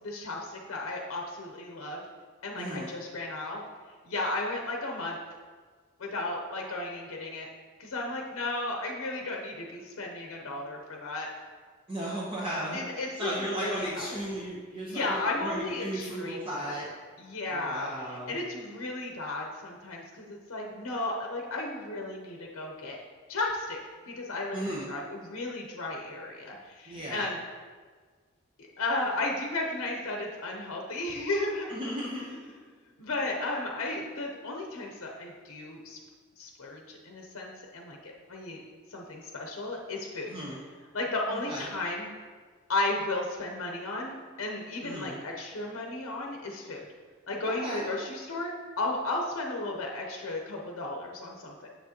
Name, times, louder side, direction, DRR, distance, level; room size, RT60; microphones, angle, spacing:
voice 1, 0.0-2.0 2.4-3.6 4.0-5.2 6.0-7.5 7.8-11.3 12.7-14.1 14.9-16.8 17.2-23.0 23.3-23.8 24.1-27.4 28.8-31.7 33.0-36.0 36.4-38.6 38.9-40.3 40.9-42.1 42.7-46.9 47.3-51.7, left 2 dB, 65° left, 0 dB, 0.7 m, -34 dB
voice 2, 2.6-2.9 11.9-12.8 13.2-16.9 17.5-18.4 24.5-25.0 26.9-27.2 31.7-32.4 40.3-40.6 41.3-41.7 44.8-45.2 47.4-47.9, right 1 dB, 25° right, -6 dB, 0.8 m, -35 dB
7.1 x 6.0 x 2.9 m, 1.5 s
head